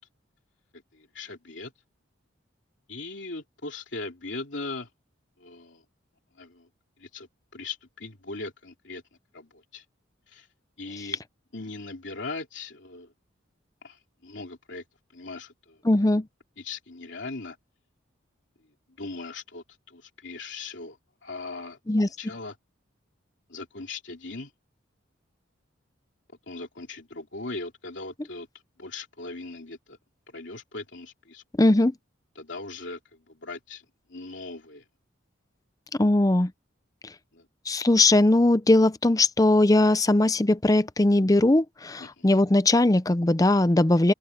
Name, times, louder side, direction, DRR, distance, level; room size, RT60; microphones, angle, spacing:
voice 1, 0.9-1.7 2.9-4.9 5.4-5.8 6.4-6.7 7.0-7.3 7.5-9.0 9.3-9.8 10.3-10.5 10.8-11.2 11.5-13.1 13.8-14.8 15.1-15.8 16.6-17.6 19.0-21.8 22.2-22.5 23.5-24.5 26.5-28.5 28.8-30.0 30.3-31.4 32.3-33.0 33.3-33.8 34.1-34.8 37.3-37.4 42.0-42.3, left 3 dB, 65° left, 3.0 m, -39 dB
voice 2, 15.8-16.3 21.9-22.1 31.6-31.9 36.0-36.5 37.7-44.1, left 2 dB, 20° left, 0.5 m, -20 dB
open air
head